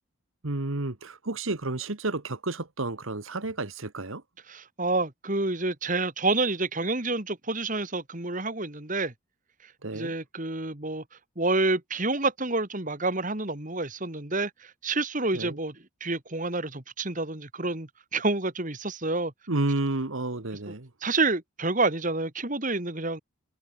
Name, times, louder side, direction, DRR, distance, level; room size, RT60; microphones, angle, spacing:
voice 1, 0.4-4.2 9.8-10.1 15.3-15.6 19.5-20.9, right 2 dB, 70° right, 1.5 m, -31 dB
voice 2, 4.5-9.1 9.9-11.0 11.4-15.8 16.0-19.3 21.0-23.2, right 2 dB, 35° right, 2.2 m, -28 dB
head